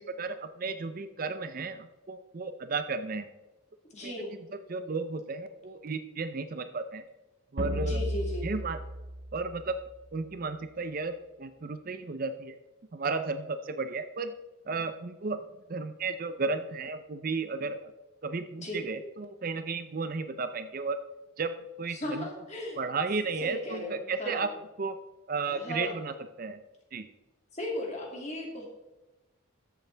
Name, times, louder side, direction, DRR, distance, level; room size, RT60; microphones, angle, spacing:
voice 1, 0.0-3.3 4.0-4.1 4.7-7.0 7.5-8.0 8.4-8.8 9.3-9.8 10.1-12.5 12.9-14.3 14.7-17.8 18.2-21.0 21.4-22.3 22.8-24.5 24.8-25.0 25.3-26.6 26.9-27.1, right 4 dB, 40° right, 10 dB, 0.5 m, -34 dB
voice 2, 3.9-4.3 7.8-8.5 18.6-18.8 21.9-22.8 23.4-24.5 25.5-26.0 27.5-28.7, left 1 dB, 30° left, -1 dB, 2.3 m, -36 dB
sound 1, 7.6-10.2, equal, 55° right, 1.1 m, -34 dB
13.5 x 7.1 x 3.3 m, 1.0 s
head